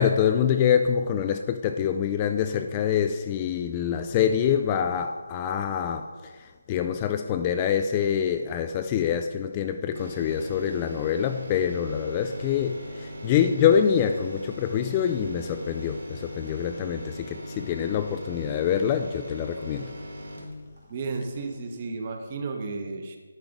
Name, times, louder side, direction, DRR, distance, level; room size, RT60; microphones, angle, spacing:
voice 1, 0.0-6.1 6.4-19.9, left 8 dB, 20° left, 7 dB, 0.3 m, -25 dB
sound 1, 9.9-21.5 21.9-22.0, equal, 70° right, 2.2 m, -39 dB
voice 2, 20.9-23.2, right 3 dB, 35° right, 4 dB, 1.0 m, -33 dB
10.5 x 4.7 x 5.2 m, 1.4 s
figure-of-eight pair, 160°, 0 cm